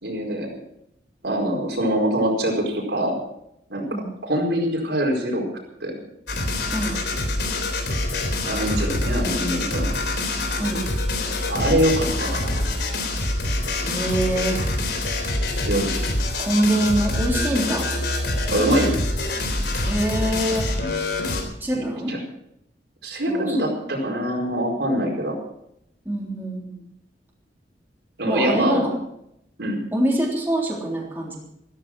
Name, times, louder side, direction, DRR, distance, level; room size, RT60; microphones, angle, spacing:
voice 1, 0.0-0.6 1.2-3.2 3.7-3.9 4.2-5.5 5.8-6.0 8.4-9.9 11.5-12.7 15.6-15.9 18.5-19.0 21.7-22.2 23.0-25.4 28.2-28.9 29.6-29.8, right 1 dB, 75° right, 0 dB, 4.8 m, -24 dB
sound 1, 6.3-21.4, left 2 dB, 70° left, 3.6 m, -25 dB
voice 2, 13.8-14.6 16.4-17.9 19.9-20.7 21.6-22.2 23.3-23.7 26.1-26.9 28.3-28.9 29.9-31.4, right 1 dB, 10° right, -3 dB, 3.6 m, -24 dB
14.5 x 14.0 x 6.1 m, 0.77 s
head